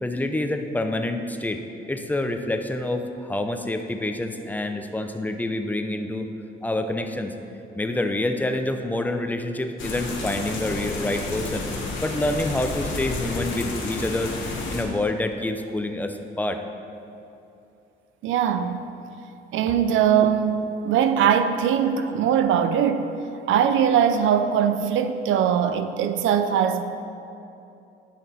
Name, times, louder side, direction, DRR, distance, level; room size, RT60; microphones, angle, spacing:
voice 1, 0.0-1.6 1.9-6.3 6.6-7.3 7.8-11.7 12.0-14.4 14.7-16.6, left 1 dB, 10° left, 0.6 m, -27 dB
sound 1, 9.8-14.8, left 3 dB, 75° left, 1.5 m, -31 dB
voice 2, 18.2-18.8 19.5-23.1 23.5-26.8, right 8 dB, 80° right, 0.5 m, -21 dB
10.5 x 5.8 x 4.2 m
cardioid pair, 90°, 20 cm